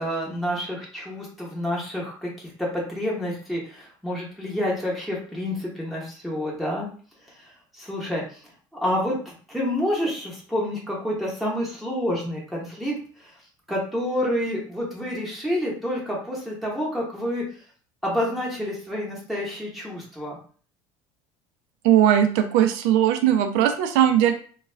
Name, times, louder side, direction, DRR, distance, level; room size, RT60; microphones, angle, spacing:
voice 1, 0.0-6.9 7.4-8.4 8.8-13.3 13.7-17.4 18.0-20.4, left 1 dB, ahead, -5 dB, 0.9 m, -28 dB
voice 2, 21.8-24.3, right 10 dB, 80° right, 7 dB, 0.5 m, -19 dB
2.3 x 2.2 x 3.2 m, 0.43 s
cardioid pair, 140°, 10 cm